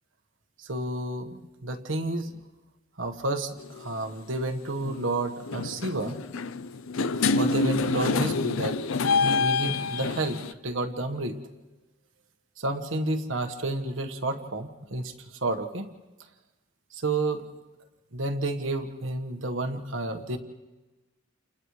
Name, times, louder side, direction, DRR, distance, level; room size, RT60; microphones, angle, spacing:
voice 1, 0.6-2.4 3.0-3.5 3.8-6.2 7.2-8.8 9.4-11.4 12.6-15.1 15.4-15.9 16.9-17.5 18.1-20.4, right 2 dB, 70° right, 5 dB, 1.5 m, -30 dB
sound 1, 3.6-3.9 4.8-5.1 5.4-10.5, left 4 dB, 80° left, 0.6 m, -27 dB
30.0 x 29.0 x 3.3 m, 1.1 s
head